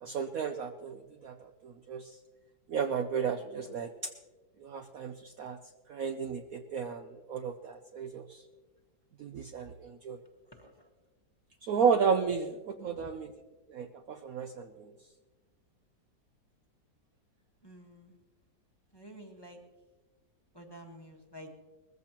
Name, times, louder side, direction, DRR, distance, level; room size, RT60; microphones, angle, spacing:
voice 1, 0.0-2.2 2.7-3.9 4.6-5.6 5.9-8.4 9.2-10.2 11.6-13.3 13.7-14.9, right 6 dB, 65° right, 6 dB, 0.9 m, -33 dB
voice 2, 10.5-10.9 12.8-13.1 17.6-18.2 18.9-19.6 20.5-21.5, equal, 15° left, 2 dB, 1.2 m, -50 dB
20.5 x 14.5 x 2.9 m, 1.3 s
omnidirectional pair, 2.0 m